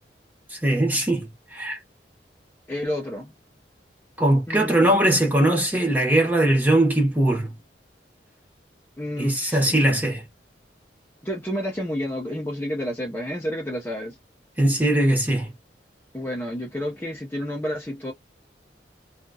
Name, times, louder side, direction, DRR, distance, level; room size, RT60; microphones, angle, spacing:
voice 1, 0.5-1.8 4.2-7.5 9.2-10.2 14.6-15.5, right 1 dB, 10° right, 0.9 m, -20 dB
voice 2, 2.7-3.3 4.5-4.9 9.0-9.9 11.2-14.2 16.1-18.1, equal, 10° left, 0.6 m, -30 dB
2.8 x 2.4 x 2.7 m
head